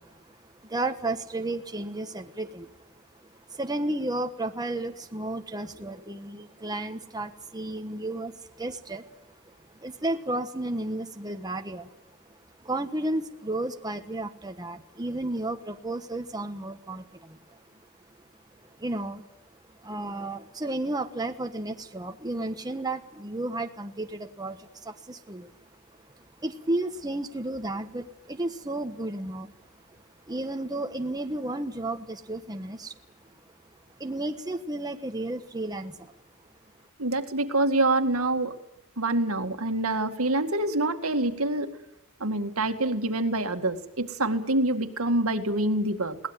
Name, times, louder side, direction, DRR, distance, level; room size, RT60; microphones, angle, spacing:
voice 1, 0.0-3.0 3.5-17.6 18.6-19.3 19.8-25.5 26.1-29.5 30.3-32.9 34.0-36.1, right 2 dB, 20° right, 6 dB, 1.3 m, -33 dB
voice 2, 37.0-38.5 39.0-41.7 42.2-46.2, right 2 dB, 75° right, 7 dB, 2.1 m, -26 dB
22.5 x 18.5 x 9.1 m, 0.94 s
head